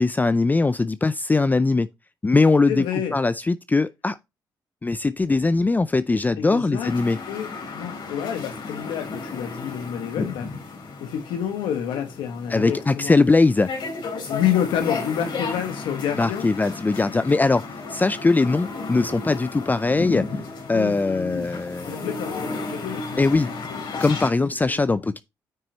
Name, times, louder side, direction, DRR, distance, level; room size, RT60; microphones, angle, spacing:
voice 1, 0.0-1.9 2.2-2.8 3.1-4.2 4.8-7.2 12.5-13.7 16.2-17.6 17.9-20.3 20.7-22.0 23.2-23.5 24.0-25.2, left 3 dB, 20° left, 0.4 m, -20 dB
voice 2, 2.7-3.2 6.3-6.9 7.3-10.5 11.0-13.2 14.3-16.4 20.7-21.5 21.8-23.3 23.7-24.0 24.7-24.8, left 9 dB, 90° left, 1.4 m, -29 dB
sound 1, 6.8-24.3, left 3 dB, 70° left, 3.6 m, -34 dB
9.2 x 6.0 x 2.8 m
supercardioid pair, 65°, 8 cm